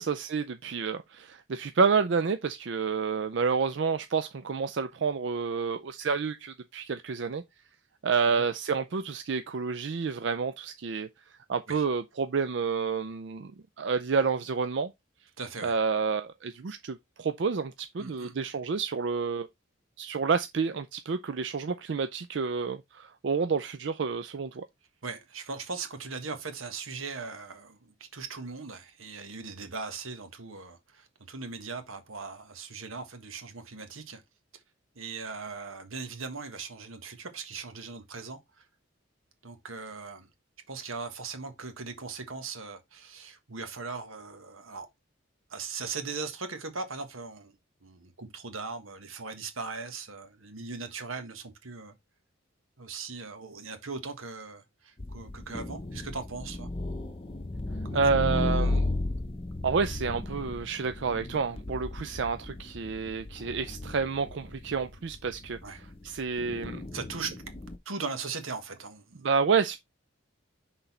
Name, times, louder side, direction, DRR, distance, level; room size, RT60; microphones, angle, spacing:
voice 1, 0.0-7.4 8.0-11.1 11.5-13.5 13.8-14.9 15.6-19.5 20.0-24.6 57.9-58.9 59.6-66.8 69.2-69.8, right 5 dB, 60° right, 0.4 m, -29 dB
voice 2, 15.4-15.7 18.0-18.4 25.0-34.2 34.9-38.4 39.4-40.3 40.7-44.9 45.5-47.5 47.8-51.9 52.8-56.7 57.9-58.0 58.3-58.8 65.6-65.8 66.9-67.3 67.8-69.3, right 4 dB, 85° right, 1.5 m, -39 dB
sound 1, 55.0-67.8, left 2 dB, 25° left, 0.7 m, -35 dB
6.1 x 4.0 x 4.2 m
head